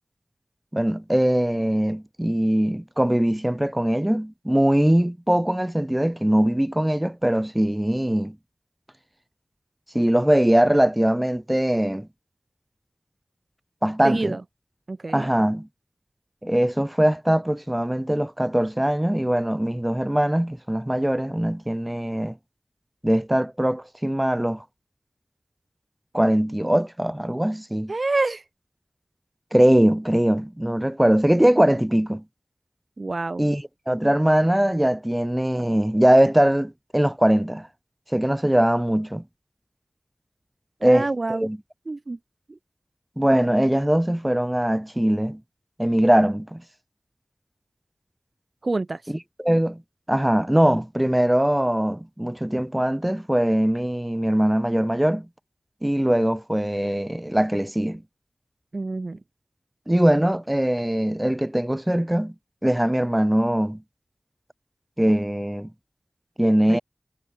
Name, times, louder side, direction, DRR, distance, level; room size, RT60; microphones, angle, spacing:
voice 1, 0.7-8.3 9.9-12.1 13.8-14.4 15.1-15.7 16.4-22.4 23.0-24.6 26.1-27.9 29.5-32.2 33.4-37.7 38.1-39.2 40.8-41.1 41.4-41.6 43.2-45.4 45.8-46.6 49.1-49.8 50.1-55.3 55.8-58.0 59.9-62.3 62.6-63.8 65.0-65.7 66.4-66.8, right 1 dB, 15° right, 1.4 m, -21 dB
voice 2, 14.0-14.4 14.9-15.3 27.9-28.4 33.0-33.4 40.8-41.4 41.9-42.2 48.6-49.0 58.7-59.2 66.7-66.8, right 3 dB, 60° right, 0.5 m, -27 dB
wide cardioid pair, 55°, 0 cm